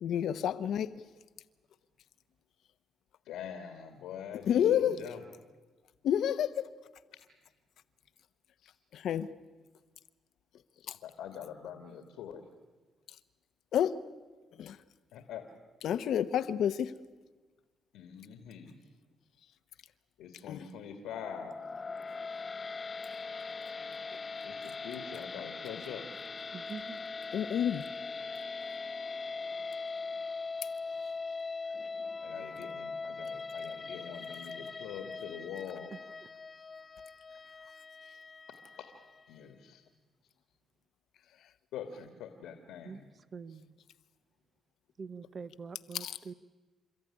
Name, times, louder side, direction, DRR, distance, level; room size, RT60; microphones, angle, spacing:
voice 1, 0.0-0.9 4.5-5.0 6.0-6.7 8.9-9.3 10.9-11.0 13.7-14.0 14.6-14.8 15.8-16.9 20.5-20.6 27.3-27.8 46.0-46.2, left 9 dB, 70° left, 11 dB, 0.9 m, -29 dB
voice 2, 3.3-5.2 8.6-8.7 11.0-12.4 15.1-15.4 17.9-18.7 20.2-21.6 24.4-26.0 32.2-35.9 39.3-39.8 41.7-43.1, left 8 dB, 90° left, 6 dB, 2.0 m, -44 dB
sound 1, 21.1-39.3, left 4 dB, 35° left, 0.7 m, -41 dB
voice 3, 26.5-27.0 35.9-36.0 42.8-43.0 43.3-43.7 45.0-46.3, right 5 dB, 40° right, 16 dB, 0.9 m, -44 dB
29.5 x 14.0 x 9.9 m, 1.3 s
cardioid pair, 90°, 0 cm